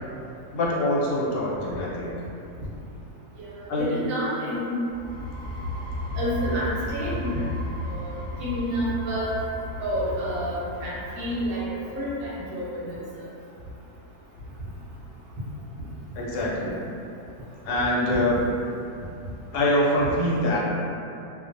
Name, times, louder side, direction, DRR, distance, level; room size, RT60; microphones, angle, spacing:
voice 1, 0.5-2.2 3.7-3.9 16.2-16.8 17.6-18.4 19.5-20.6, left 1 dB, 80° left, -5 dB, 1.1 m, -24 dB
voice 2, 3.4-4.8 6.2-7.4 7.9-9.3 9.8-11.6 11.9-13.0 18.1-18.2, equal, 70° right, -8 dB, 0.9 m, -29 dB
sound 1, 4.9-12.5, left 1 dB, 60° left, 0.7 m, -34 dB
2.4 x 2.3 x 2.5 m, 2.7 s
omnidirectional pair, 1.7 m